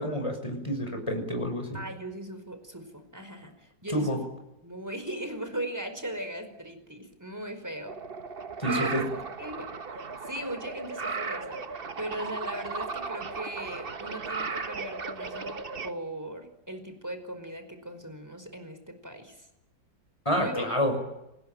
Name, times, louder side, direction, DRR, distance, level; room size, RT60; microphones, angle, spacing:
voice 1, 0.0-1.8 3.9-4.2 8.6-9.0 20.2-21.0, equal, 15° left, 4 dB, 6.3 m, -28 dB
voice 2, 1.7-4.2 4.6-7.9 8.7-19.5 20.3-20.7, right 1 dB, 10° right, 8 dB, 4.9 m, -38 dB
sound 1, 7.9-15.9, right 4 dB, 35° right, 1.2 m, -36 dB
28.5 x 20.5 x 9.1 m, 0.90 s
omnidirectional pair, 2.0 m